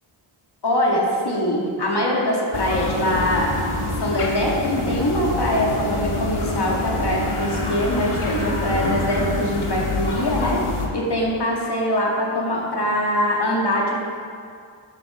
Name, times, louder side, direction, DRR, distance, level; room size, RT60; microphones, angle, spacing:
voice 1, 0.6-3.5 4.0-10.6 10.9-14.0, left 1 dB, 50° left, -3 dB, 2.3 m, -23 dB
sound 1, 2.5-10.9, left 2 dB, 80° left, 1.6 m, -26 dB
11.5 x 8.8 x 4.6 m, 2.4 s
wide cardioid pair, 85°, 50 cm